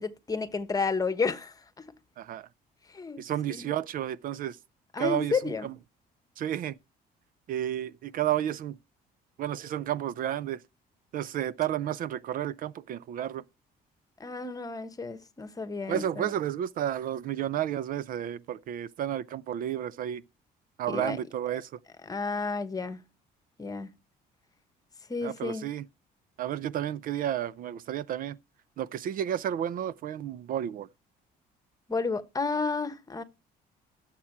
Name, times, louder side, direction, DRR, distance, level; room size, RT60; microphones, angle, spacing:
voice 1, 0.0-1.8 2.9-3.2 3.5-3.7 4.9-5.7 14.2-16.3 20.9-21.2 22.1-23.0 23.6-23.9 25.1-25.7 31.9-33.2, left 4 dB, 20° left, 1.1 m, -31 dB
voice 2, 2.2-2.5 3.2-4.6 5.0-5.7 6.4-6.8 7.5-8.8 9.4-10.6 11.1-13.4 15.9-20.2 20.8-21.7 25.2-25.9 26.4-28.4 28.8-30.9, right 11 dB, 55° right, 0.4 m, -32 dB
12.5 x 7.4 x 4.5 m
cardioid pair, 110°, 17 cm